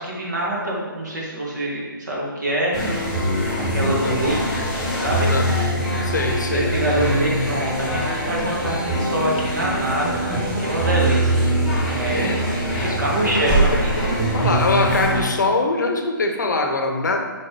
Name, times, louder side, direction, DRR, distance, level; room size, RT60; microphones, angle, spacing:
voice 1, 0.0-2.8 3.6-4.6 4.9-5.3 6.5-11.4 11.8-12.3 13.0-13.9, right 1 dB, 55° right, -4 dB, 1.9 m, -25 dB
sound 1, 2.7-15.2, right 1 dB, ahead, 1.5 m, -23 dB
voice 2, 5.3-6.8 12.2-12.4 12.8-17.2, left 3 dB, 55° left, 4 dB, 0.8 m, -24 dB
6.3 x 5.3 x 3.0 m, 1.4 s
figure-of-eight pair, 135°, 12 cm